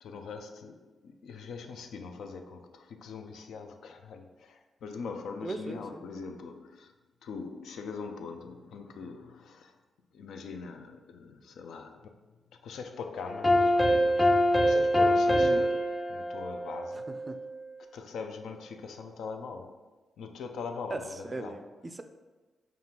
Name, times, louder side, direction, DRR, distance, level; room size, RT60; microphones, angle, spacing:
voice 1, 0.0-6.9 7.2-9.7 10.1-12.1 12.6-15.8 16.1-17.1 17.9-19.8 20.2-21.6, left 5 dB, 80° left, 0.3 m, -42 dB
voice 2, 5.4-6.1 15.3-15.7 17.1-17.4 20.9-22.0, right 2 dB, 30° right, 0.3 m, -38 dB
sound 1, 13.2-17.4, equal, 25° left, 0.5 m, -25 dB
5.2 x 2.4 x 2.9 m
cardioid pair, 65°, 0 cm